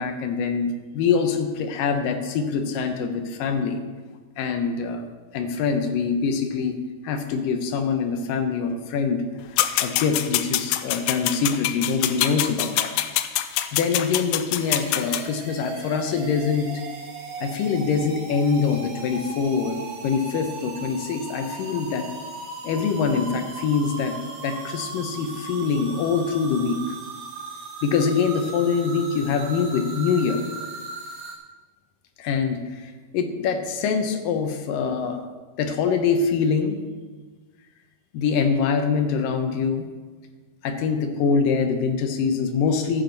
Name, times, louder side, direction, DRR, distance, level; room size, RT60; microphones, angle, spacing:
voice 1, 0.0-3.8 4.4-5.0 5.3-9.2 9.8-12.9 13.7-16.7 17.4-22.0 22.6-26.8 27.8-30.4 32.2-35.3 35.6-36.8 38.1-39.9 40.6-43.0, left 5 dB, 70° left, 6 dB, 2.4 m, -24 dB
sound 1, 9.6-15.2, left 13 dB, 90° left, 2.5 m, -25 dB
sound 2, 14.6-31.3, right 3 dB, 75° right, 3.3 m, -37 dB
14.5 x 9.6 x 3.9 m, 1.4 s
omnidirectional pair, 4.3 m